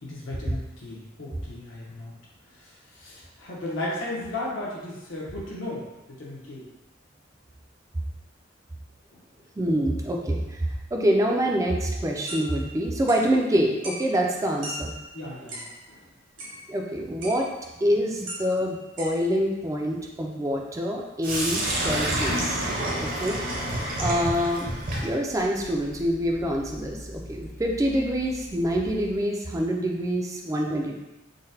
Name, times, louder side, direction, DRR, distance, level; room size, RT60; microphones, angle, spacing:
voice 1, 0.0-2.1 2.6-6.7 15.1-16.0 16.4-16.5, left 1 dB, 80° left, -4 dB, 0.8 m, -35 dB
voice 2, 9.6-14.9 16.7-17.5 17.8-22.7 23.0-23.7 24.0-24.7 25.0-31.0, equal, 15° right, 0 dB, 0.3 m, -26 dB
sound 1, 12.3-13.3 13.8-14.3 14.6-15.8 16.4-16.9 17.2-17.7 18.2-19.2, equal, 65° right, 1.0 m, -39 dB
Sink (filling or washing), 21.2-29.1, right 1 dB, 45° right, 0.7 m, -30 dB
3.8 x 2.1 x 2.7 m, 1.0 s
head